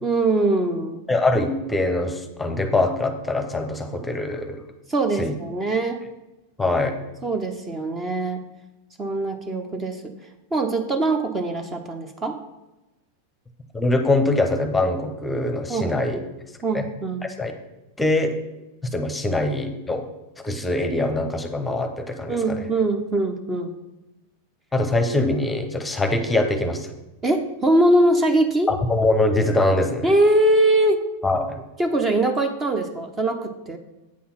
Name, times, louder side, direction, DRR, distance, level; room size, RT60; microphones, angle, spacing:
voice 1, 0.0-1.0 4.9-6.0 7.2-8.4 9.0-10.1 10.5-12.4 15.7-16.2 16.6-17.2 22.3-23.7 27.2-28.7 30.0-31.0 31.8-33.8, right 2 dB, 20° right, 6 dB, 0.8 m, -22 dB
voice 2, 1.1-4.6 5.2-5.3 6.6-7.0 13.7-16.2 16.7-16.9 17.2-17.5 18.0-18.4 18.9-20.1 20.4-22.6 24.7-26.9 28.7-30.1 31.2-31.6, left 2 dB, 10° left, 7 dB, 0.9 m, -23 dB
8.5 x 5.6 x 5.8 m, 1.0 s
figure-of-eight pair, 90°, 0 cm